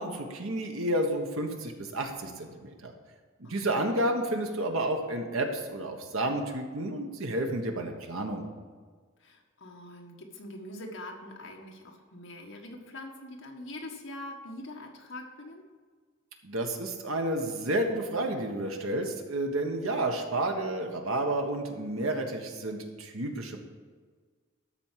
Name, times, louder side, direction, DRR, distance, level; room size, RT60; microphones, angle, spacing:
voice 1, 0.0-2.9 3.4-8.4 16.4-23.6, right 1 dB, 85° right, 3 dB, 1.4 m, -31 dB
voice 2, 3.4-4.0 9.2-15.6, left 1 dB, 65° left, 1 dB, 1.6 m, -43 dB
13.0 x 4.5 x 7.5 m, 1.5 s
head